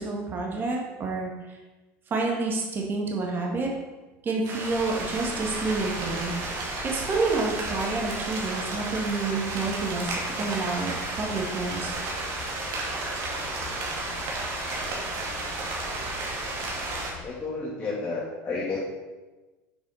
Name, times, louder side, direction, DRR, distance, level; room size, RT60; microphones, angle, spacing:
voice 1, 0.0-1.6 2.1-3.7 4.2-6.4 6.8-12.0, right 3 dB, 35° right, 0 dB, 1.9 m, -29 dB
sound 1, 4.4-17.1, right 2 dB, 65° right, 2.4 m, -33 dB
sound 2, 4.7-17.3, left 6 dB, 50° left, 0.9 m, -43 dB
voice 2, 17.2-18.8, left 3 dB, 20° left, -7 dB, 1.9 m, -31 dB
7.3 x 4.8 x 5.7 m, 1.2 s
supercardioid pair, 110°, 6 cm